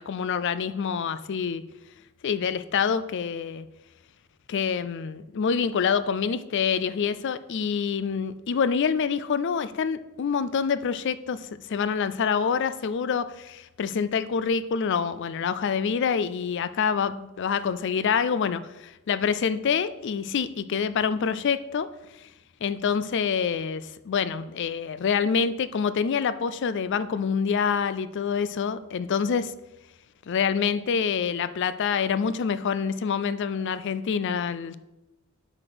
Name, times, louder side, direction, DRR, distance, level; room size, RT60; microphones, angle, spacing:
voice 1, 0.0-1.6 2.2-3.7 4.5-21.9 22.6-29.5 30.3-34.8, left 6 dB, 55° left, 14 dB, 0.4 m, -26 dB
7.5 x 5.0 x 6.0 m, 0.95 s
head